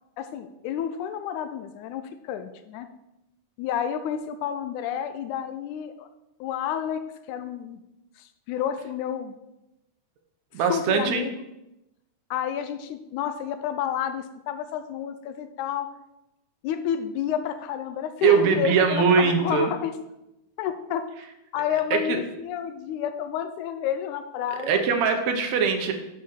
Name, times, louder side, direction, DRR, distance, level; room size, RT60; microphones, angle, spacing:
voice 1, 0.2-2.9 3.6-6.1 6.4-7.8 8.2-9.4 10.7-11.4 12.3-15.9 16.6-19.9 20.6-21.1 21.5-24.8, left 9 dB, 80° left, 9 dB, 1.8 m, -30 dB
voice 2, 10.5-11.3 18.2-19.7 21.9-22.2 24.5-25.9, right 6 dB, 70° right, 5 dB, 1.8 m, -22 dB
7.2 x 3.9 x 6.5 m, 0.91 s
omnidirectional pair, 3.8 m